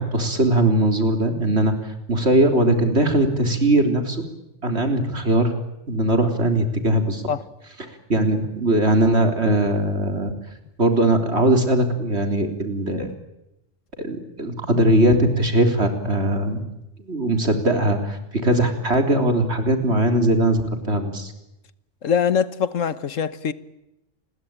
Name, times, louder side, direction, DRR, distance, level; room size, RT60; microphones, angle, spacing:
voice 1, 0.0-1.7 2.1-4.2 4.6-5.5 5.9-7.2 7.8-10.3 10.8-13.1 14.0-16.6 17.1-21.3, right 1 dB, 55° right, 3.9 m, -20 dB
voice 2, 22.0-23.5, left 7 dB, 85° left, 1.6 m, -22 dB
29.5 x 21.5 x 8.9 m
omnidirectional pair, 1.3 m